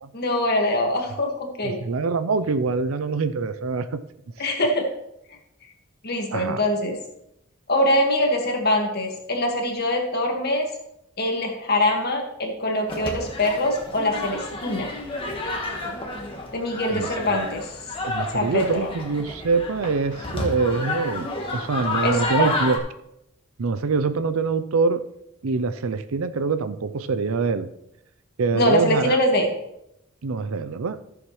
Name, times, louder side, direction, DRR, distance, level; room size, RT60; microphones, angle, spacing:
voice 1, 0.1-1.8 4.4-4.9 6.0-7.0 7.7-10.6 11.2-14.9 16.5-17.6 18.3-18.9 22.0-22.5 28.5-29.5, left 1 dB, 50° left, 2 dB, 1.9 m, -23 dB
voice 2, 1.6-4.0 6.3-6.6 16.9-17.1 18.0-22.8 23.6-25.0 25.4-27.7 28.4-29.2 30.2-31.0, right 4 dB, 85° right, 12 dB, 0.5 m, -24 dB
sound 1, 12.9-22.8, left 2 dB, 25° left, 1.5 m, -30 dB
14.5 x 7.1 x 3.2 m, 0.82 s
head